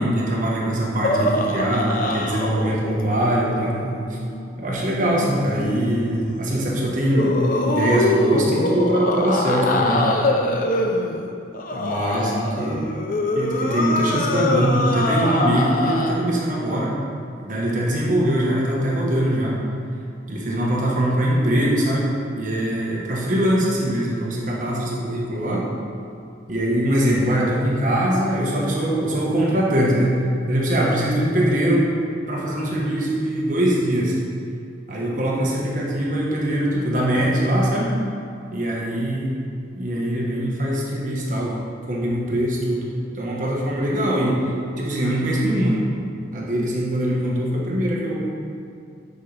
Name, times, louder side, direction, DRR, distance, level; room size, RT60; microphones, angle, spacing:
voice 1, 0.0-3.8 4.6-10.1 11.7-12.8 13.3-16.9 17.4-19.6 20.3-22.1 22.3-25.6 26.5-30.2 30.5-31.8 32.3-34.1 34.9-37.9 38.5-39.3 39.8-41.5 41.9-42.9 43.1-44.4 44.8-45.8 46.3-48.2, right 1 dB, 45° right, -4 dB, 1.3 m, -22 dB
sound 1, 1.0-4.5 5.6-6.1 7.1-16.1, left 1 dB, 45° left, 0.5 m, -24 dB
8.7 x 5.3 x 3.4 m, 2.4 s
head